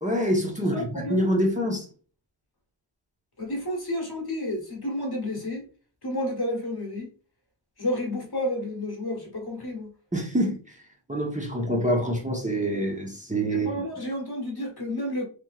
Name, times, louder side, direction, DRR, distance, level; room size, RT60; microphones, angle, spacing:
voice 1, 0.0-1.8 10.1-10.6 11.1-13.7, equal, 15° right, 0.9 m, -26 dB
voice 2, 0.7-1.2 3.4-5.7 6.0-7.1 7.8-9.9 13.5-15.3, left 1 dB, 50° left, 1.3 m, -31 dB
3.3 x 3.0 x 2.4 m
wide cardioid pair, 65°, 50 cm